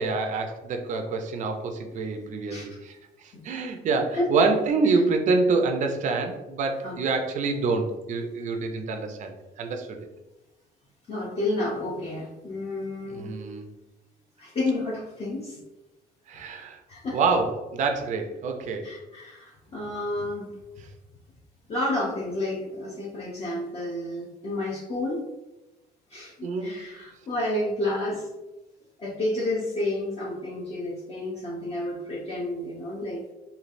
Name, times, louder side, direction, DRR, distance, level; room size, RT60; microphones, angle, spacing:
voice 1, 0.0-3.0 3.4-10.1 13.1-13.6 16.3-16.8 17.1-18.9 26.4-26.8, right 4 dB, 45° right, 5 dB, 0.4 m, -26 dB
voice 2, 11.1-13.3 14.4-15.6 16.9-17.2 18.8-20.5 21.7-25.2 26.1-28.3 29.0-33.2, left 1 dB, 35° left, -5 dB, 0.6 m, -30 dB
3.1 x 2.3 x 2.5 m, 1.0 s
cardioid pair, 110°, 17 cm